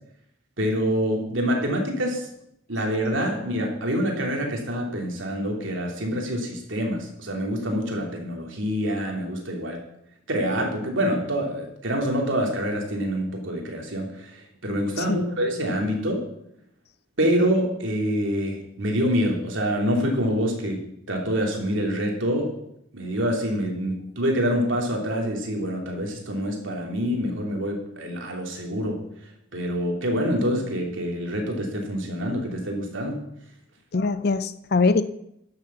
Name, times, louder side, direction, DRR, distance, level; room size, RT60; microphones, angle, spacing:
voice 1, 0.6-2.3 2.7-9.8 10.3-16.2 17.2-22.5 22.9-29.0 29.5-33.2, equal, 75° right, 1 dB, 2.9 m, -26 dB
voice 2, 33.9-35.0, left 3 dB, 50° left, 13 dB, 0.5 m, -22 dB
11.5 x 7.0 x 6.9 m, 0.76 s
head